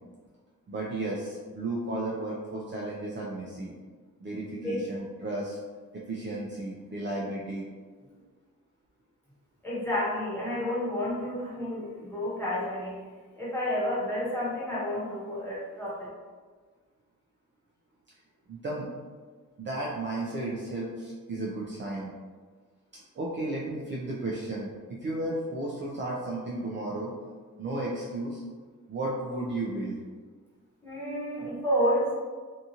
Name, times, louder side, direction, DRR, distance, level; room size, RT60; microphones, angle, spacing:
voice 1, 0.7-3.7 4.2-5.6 5.9-7.6 18.5-18.9 19.6-22.1 23.1-27.1 27.6-28.4 28.9-30.0, right 2 dB, 35° right, -5 dB, 0.4 m, -33 dB
voice 2, 9.6-13.0 13.4-16.1 30.8-32.1, equal, 5° left, -8 dB, 1.0 m, -30 dB
2.7 x 2.4 x 2.8 m, 1.5 s
wide cardioid pair, 140°, 33 cm